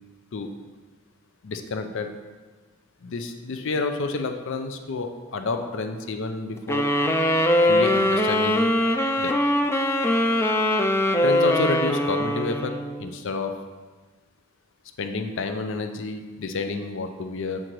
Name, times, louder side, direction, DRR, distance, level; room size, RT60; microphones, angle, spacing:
voice 1, 1.4-2.1 3.0-6.9 7.7-8.7 9.2-9.4 11.2-13.5 15.0-17.6, left 3 dB, 65° left, 6 dB, 0.5 m, -29 dB
sound 1, 6.7-13.1, left 1 dB, 10° left, 0.4 m, -22 dB
7.8 x 3.8 x 4.6 m, 1.4 s
head